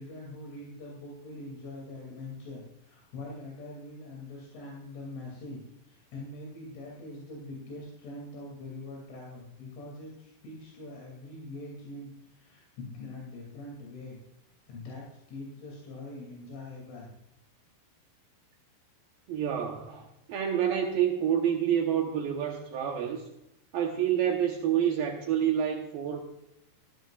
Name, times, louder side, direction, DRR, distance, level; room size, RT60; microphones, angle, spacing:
voice 1, 0.0-14.2 14.7-17.1, left 2 dB, 75° left, -2 dB, 5.1 m, -43 dB
voice 2, 19.3-23.2 23.7-26.2, right 9 dB, 85° right, 1 dB, 2.0 m, -28 dB
16.5 x 14.0 x 2.4 m, 0.85 s
omnidirectional pair, 5.7 m